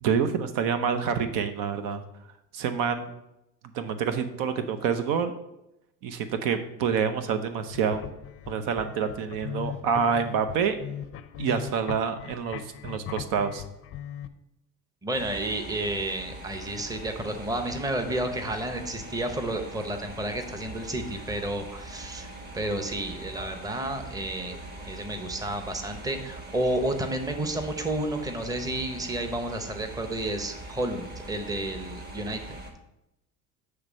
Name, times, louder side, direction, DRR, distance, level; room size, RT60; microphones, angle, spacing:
voice 1, 0.0-2.0 2.5-3.1 3.7-5.3 6.0-8.0 8.5-10.8 11.4-13.6, right 6 dB, 75° right, 9 dB, 0.7 m, -27 dB
sound 1, 7.6-14.3, left 10 dB, 40° left, 0.5 m, -39 dB
voice 2, 15.0-24.6 24.8-32.4, right 1 dB, 10° right, 6 dB, 0.8 m, -31 dB
sound 2, 15.1-32.7, right 2 dB, 30° right, 1.2 m, -42 dB
7.9 x 3.3 x 5.1 m, 0.86 s
supercardioid pair, 105°, 34 cm